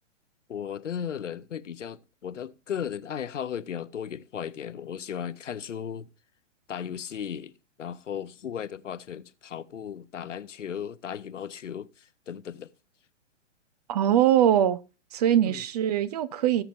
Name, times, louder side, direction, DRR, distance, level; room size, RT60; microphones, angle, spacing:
voice 1, 0.5-6.1 6.7-7.5 7.8-12.7 15.5-15.6, left 8 dB, 75° left, 0.8 m, -36 dB
voice 2, 13.9-14.8 15.1-16.6, right 10 dB, 35° right, 0.5 m, -22 dB
18.5 x 7.0 x 2.5 m
figure-of-eight pair, 120°, 37 cm